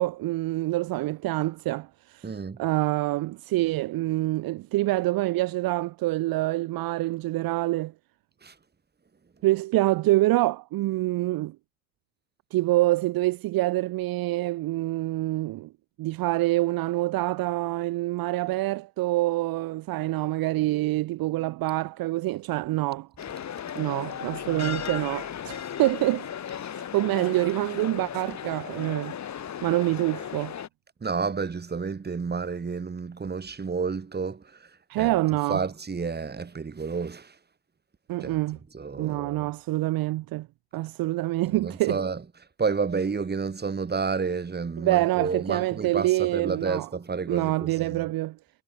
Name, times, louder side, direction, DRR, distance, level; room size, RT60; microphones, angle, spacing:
voice 1, 0.0-2.3 2.6-7.9 9.4-11.5 12.5-15.7 16.0-23.1 23.7-26.3 26.7-29.1 29.6-30.5 34.9-35.6 38.1-38.6 39.0-40.5 40.7-42.0 44.8-46.9 47.3-48.4, right 18 dB, 50° right, 1.5 m, -26 dB
voice 2, 2.2-2.6 8.4-8.5 31.0-34.7 35.0-35.2 35.5-37.4 38.2-38.4 38.7-39.5 41.5-42.2 42.6-48.1, right 5 dB, 20° right, 5.7 m, -30 dB
sound 1, 23.2-30.7, left 9 dB, 40° left, 6.3 m, -36 dB
hypercardioid pair, 85°, 43 cm